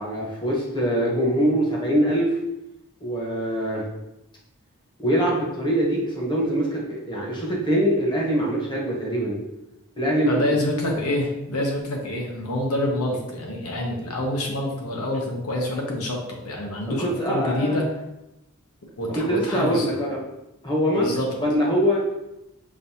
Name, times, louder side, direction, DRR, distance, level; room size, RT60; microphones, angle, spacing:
voice 1, 0.0-2.3 3.0-3.8 5.0-9.4 10.0-10.6 17.0-17.8 19.1-20.2 20.6-22.0, equal, 20° left, -3 dB, 0.9 m, -23 dB
voice 2, 10.3-16.2 16.4-17.9 19.0-20.0 20.9-21.3, left 1 dB, 80° left, 0 dB, 0.9 m, -27 dB
5.2 x 2.6 x 2.8 m, 0.90 s
head